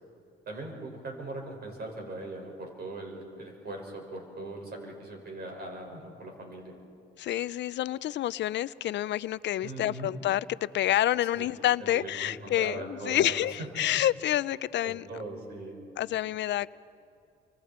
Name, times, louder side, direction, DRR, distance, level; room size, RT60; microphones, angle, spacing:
voice 1, 0.5-6.7 9.6-10.1 11.3-11.4 11.8-13.5 13.8-13.9 14.8-15.8, right 2 dB, 55° right, 1 dB, 5.6 m, -40 dB
voice 2, 7.2-15.1 16.0-16.7, left 13 dB, 65° left, 18 dB, 0.4 m, -28 dB
29.5 x 25.5 x 4.4 m, 2.5 s
cardioid pair, 90°, 20 cm